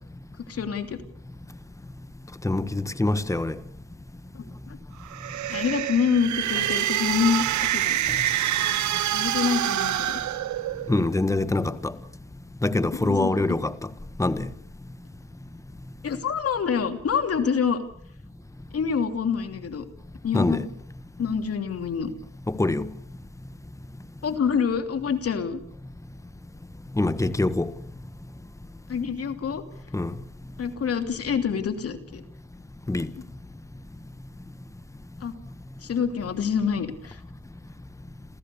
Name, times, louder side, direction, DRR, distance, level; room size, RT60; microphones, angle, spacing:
voice 1, 0.5-1.0 4.3-4.8 5.5-7.4 7.7-8.0 9.1-10.2 12.9-13.3 16.0-17.8 18.7-19.8 20.2-20.7 21.2-22.1 24.2-25.6 28.9-29.6 30.6-32.2 35.2-35.3 35.8-37.2, left 6 dB, 50° left, 2.9 m, -26 dB
voice 2, 2.4-3.6 10.9-11.9 12.6-13.7 14.2-14.5 20.3-20.6 22.5-22.9 27.0-27.7 29.9-30.1 32.9-33.1, left 2 dB, 10° left, 1.3 m, -24 dB
sound 1, 5.0-11.1, right 12 dB, 70° right, 1.1 m, -26 dB
28.0 x 15.0 x 6.9 m
cardioid pair, 90°, 30 cm